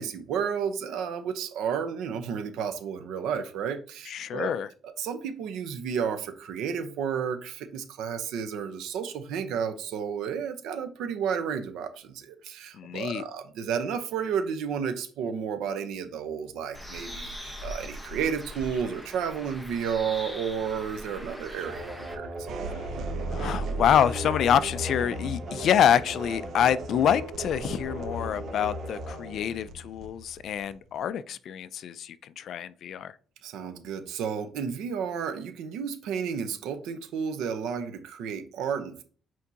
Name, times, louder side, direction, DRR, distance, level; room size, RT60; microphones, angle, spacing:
voice 1, 0.0-4.5 4.8-22.7 33.4-39.0, right 7 dB, 85° right, 0.9 m, -32 dB
voice 2, 4.1-4.7 12.7-13.2 22.7-22.8 23.3-33.1, left 9 dB, 60° left, 0.4 m, -26 dB
Bird, 16.7-22.2, equal, ahead, 1.1 m, -41 dB
sound 1, 21.6-30.3, left 1 dB, 45° right, 2.3 m, -37 dB
sound 2, 22.4-31.1, right 4 dB, 60° right, 0.7 m, -39 dB
8.3 x 4.5 x 2.8 m
cardioid pair, 135°, 0 cm